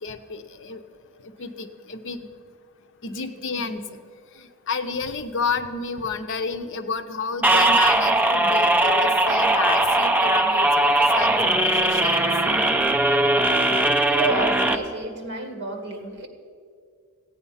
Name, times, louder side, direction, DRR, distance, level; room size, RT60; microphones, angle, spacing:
voice 1, 0.0-0.8 1.2-2.3 3.0-3.8 4.4-12.3, left 4 dB, 60° left, 9 dB, 0.7 m, -31 dB
voice 2, 3.1-3.7 14.1-16.3, right 2 dB, 55° right, 5 dB, 1.6 m, -31 dB
sound 1, 7.4-14.8, right 1 dB, 10° right, 0.5 m, -19 dB
15.0 x 9.0 x 5.6 m, 2.1 s
head